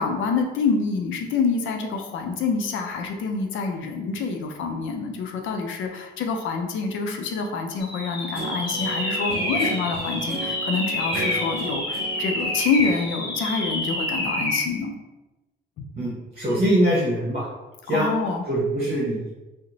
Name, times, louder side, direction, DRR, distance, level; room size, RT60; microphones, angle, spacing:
voice 1, 0.0-14.9 15.8-15.9 17.9-18.4, left 4 dB, 75° left, 4 dB, 0.5 m, -27 dB
sound 1, 7.8-14.7, left 1 dB, 25° left, 1.2 m, -28 dB
Guitar, 8.3-14.2, right 4 dB, 55° right, 0.5 m, -36 dB
voice 2, 16.0-17.5 17.8-18.1 18.5-19.3, right 1 dB, 30° right, -6 dB, 0.9 m, -23 dB
2.8 x 2.1 x 3.9 m, 1.1 s
cardioid pair, 90°, 20 cm